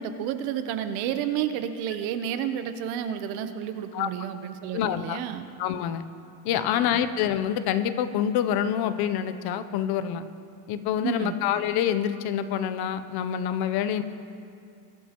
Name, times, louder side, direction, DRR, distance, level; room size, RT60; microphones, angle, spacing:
voice 1, 0.0-5.5 6.5-6.8 11.0-11.4, right 9 dB, 75° right, 9 dB, 0.9 m, -31 dB
voice 2, 4.7-5.2 5.6-6.1 6.4-10.2 10.7-14.0, left 9 dB, 55° left, 12 dB, 0.7 m, -26 dB
22.0 x 11.5 x 3.0 m, 2.5 s
cardioid pair, 150°, 46 cm